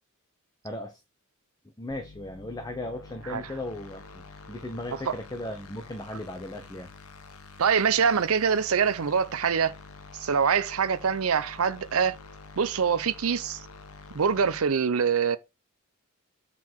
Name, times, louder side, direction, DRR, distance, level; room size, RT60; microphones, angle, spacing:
voice 1, 0.6-1.0 1.8-6.9, left 1 dB, 20° left, 0.8 m, -37 dB
sound 1, 1.9-14.6, left 4 dB, 85° left, 1.1 m, -47 dB
voice 2, 7.6-9.7 10.2-12.2 12.6-13.6 14.1-15.4, right 6 dB, 70° right, 0.6 m, -24 dB
7.4 x 4.1 x 4.5 m
head